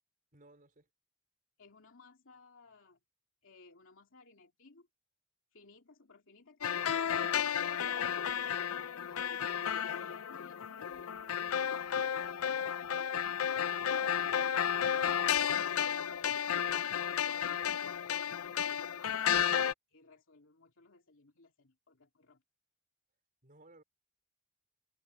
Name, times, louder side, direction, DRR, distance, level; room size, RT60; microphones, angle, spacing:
voice 1, 0.3-0.9 23.4-23.8, right 2 dB, 40° right, 4.6 m, -59 dB
voice 2, 1.6-3.0 3.4-4.9 5.5-7.3 8.0-11.8 13.4-19.5 19.9-22.4, left 3 dB, 65° left, 2.8 m, -59 dB
sound 1, 6.6-19.7, left 8 dB, 90° left, 0.6 m, -32 dB
head